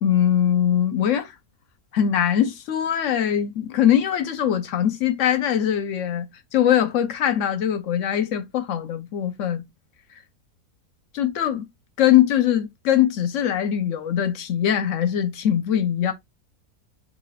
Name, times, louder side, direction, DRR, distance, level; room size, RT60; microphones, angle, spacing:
voice 1, 0.0-1.3 1.9-9.6 11.1-11.7 12.0-16.1, left 10 dB, 65° left, 0.8 m, -22 dB
3.9 x 2.9 x 2.3 m
omnidirectional pair, 1.6 m